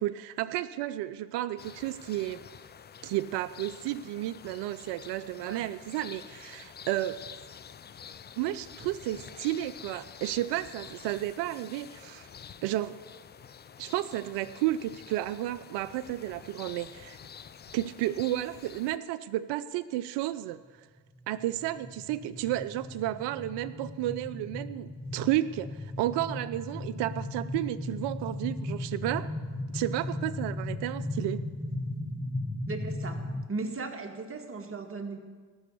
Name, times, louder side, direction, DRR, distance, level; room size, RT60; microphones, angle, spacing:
voice 1, 0.0-2.4 3.0-7.2 8.4-12.3 12.6-13.0 13.8-17.2 17.7-20.6 21.3-29.3 29.7-31.4, right 14 dB, 60° right, 13 dB, 0.6 m, -32 dB
sound 1, 1.6-19.0, left 7 dB, 25° left, 0.5 m, -48 dB
sound 2, 21.0-33.4, left 1 dB, 5° left, 0.8 m, -36 dB
voice 2, 32.7-35.2, right 3 dB, 30° right, 4 dB, 1.8 m, -37 dB
14.0 x 6.2 x 8.4 m, 1.5 s
hypercardioid pair, 70°, 46 cm